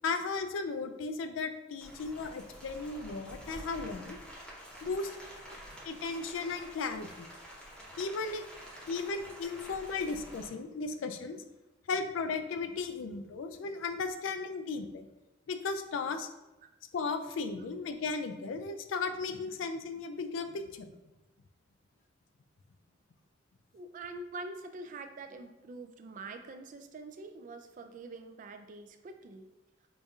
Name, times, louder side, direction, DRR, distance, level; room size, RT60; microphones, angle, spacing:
voice 1, 0.0-4.2 4.8-5.2 5.8-7.3 8.0-8.4 8.9-11.4 11.9-15.1 15.5-16.3 16.9-20.9, left 4 dB, 90° left, 8 dB, 0.4 m, -35 dB
Rain, 1.8-10.5, equal, 5° left, 0.8 m, -49 dB
voice 2, 23.7-29.5, right 3 dB, 45° right, 7 dB, 0.3 m, -45 dB
5.0 x 2.7 x 2.3 m, 0.99 s
head